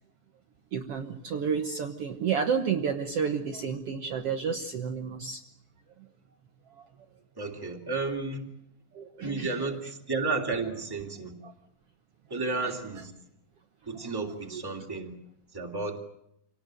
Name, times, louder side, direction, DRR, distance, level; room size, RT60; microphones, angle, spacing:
voice 1, 0.7-5.4 6.8-6.9 8.9-9.5 11.4-11.5 12.6-12.7 14.5-14.6, right 6 dB, 60° right, 4 dB, 1.9 m, -31 dB
voice 2, 7.4-8.4 9.2-11.3 12.3-13.1 13.9-15.1 15.5-16.0, right 3 dB, 10° right, 1 dB, 2.6 m, -32 dB
26.5 x 19.0 x 9.1 m, 0.77 s
omnidirectional pair, 3.5 m